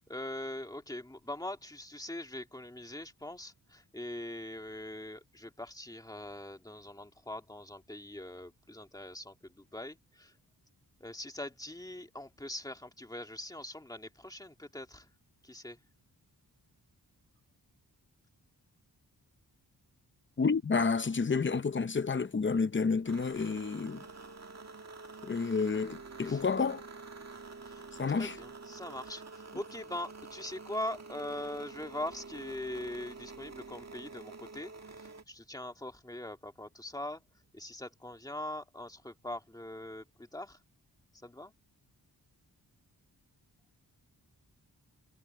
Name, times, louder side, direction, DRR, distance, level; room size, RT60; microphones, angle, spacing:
voice 1, 0.0-10.3 11.0-15.1 15.4-15.8 26.3-26.4 27.6-27.9 28.1-37.2 37.5-40.6 41.2-41.5, left 1 dB, 10° left, 2.0 m, -42 dB
voice 2, 20.4-24.0 25.2-26.8 28.0-28.4, left 4 dB, 30° left, 0.7 m, -30 dB
sound 1, 23.0-35.2, right 4 dB, 40° right, 1.9 m, -48 dB
wide cardioid pair, 135°, 39 cm